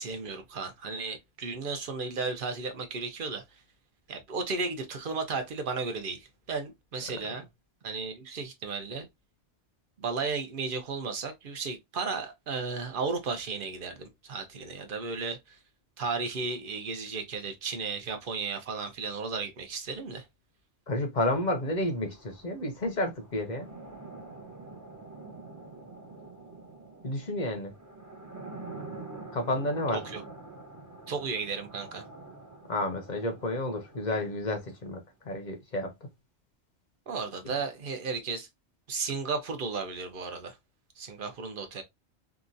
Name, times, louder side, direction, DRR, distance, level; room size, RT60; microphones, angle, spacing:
voice 1, 0.0-3.4 4.1-7.5 7.8-9.1 10.0-15.6 16.0-20.2 29.9-30.2 31.1-32.0 37.1-38.5 38.9-40.5 41.0-41.8, right 4 dB, 55° right, 0.8 m, -34 dB
voice 2, 20.9-23.7 27.0-27.7 29.3-30.0 32.7-35.0 35.2-35.9, left 1 dB, 45° left, 0.7 m, -30 dB
sound 1, 21.2-35.1, right 3 dB, 20° right, 0.5 m, -46 dB
2.9 x 2.4 x 2.5 m
omnidirectional pair, 1.2 m